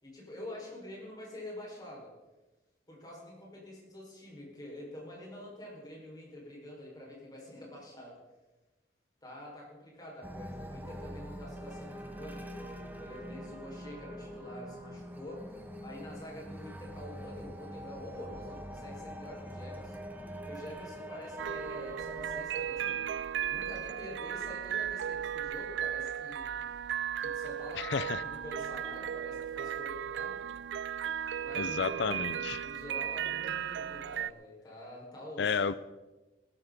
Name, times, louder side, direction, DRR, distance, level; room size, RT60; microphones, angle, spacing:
voice 1, 0.0-2.1 2.9-8.2 9.2-15.4 15.8-20.0 20.4-23.1 23.5-26.5 27.2-30.4 31.4-31.9 32.3-35.6, left 1 dB, 25° left, -3 dB, 5.5 m, -46 dB
sound 1, 10.2-22.4, equal, 10° right, 1.2 m, -44 dB
sound 2, 21.4-34.3, right 9 dB, 85° right, 0.3 m, -36 dB
voice 2, 27.8-28.2 31.6-32.6 35.4-35.7, left 5 dB, 75° left, 15 dB, 0.5 m, -31 dB
19.5 x 12.5 x 4.1 m, 1.1 s
head